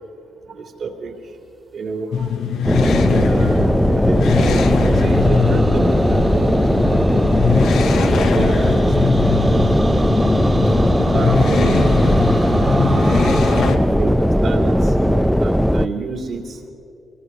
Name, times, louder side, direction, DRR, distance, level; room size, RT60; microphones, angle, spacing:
voice 1, 0.5-1.1 1.7-2.3 3.1-7.2 7.5-7.7 8.0-9.5 10.7-12.0 13.0-13.6 14.0-16.4, right 4 dB, 60° right, 3 dB, 3.3 m, -29 dB
sound 1, 2.1-13.8, left 6 dB, 75° left, 1.4 m, -21 dB
sound 2, 2.6-15.9, equal, ahead, 0.5 m, -17 dB
sound 3, 4.1-13.7, right 2 dB, 25° right, 1.8 m, -30 dB
24.0 x 22.5 x 4.8 m, 2.8 s
cardioid pair, 90°, 0 cm